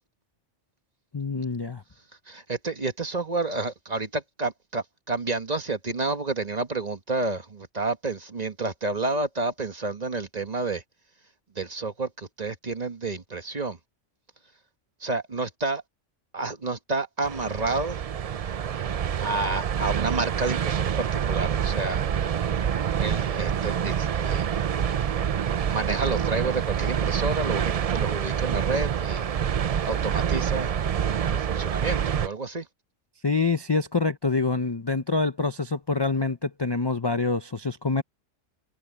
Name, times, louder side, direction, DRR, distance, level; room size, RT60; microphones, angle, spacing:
voice 1, 1.1-1.8 33.2-38.0, left 4 dB, 30° left, 0.5 m, -26 dB
voice 2, 2.3-10.8 11.5-13.8 15.0-15.8 16.3-18.0 19.2-22.1 23.0-24.8 25.7-29.3 29.8-30.7 31.3-32.7, right 3 dB, 35° right, 1.4 m, -30 dB
sound 1, 17.2-32.3, right 8 dB, 75° right, 0.3 m, -27 dB
omnidirectional pair, 1.3 m